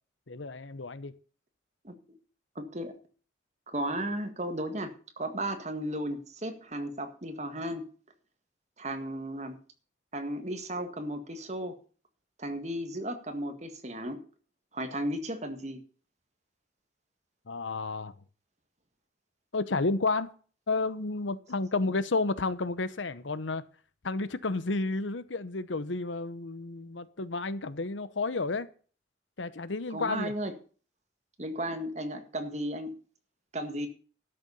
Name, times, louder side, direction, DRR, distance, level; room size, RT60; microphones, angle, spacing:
voice 1, 0.3-1.1 17.5-18.1 19.5-20.3 20.7-23.6 24.0-28.7 29.4-30.3, left 3 dB, 85° left, 0.9 m, -31 dB
voice 2, 1.8-2.2 2.6-3.0 3.7-7.9 8.8-9.6 10.1-11.8 12.4-14.2 14.7-15.8 29.9-30.5 31.4-32.9 33.5-33.9, right 1 dB, 35° right, 1.7 m, -35 dB
12.5 x 6.9 x 6.9 m
head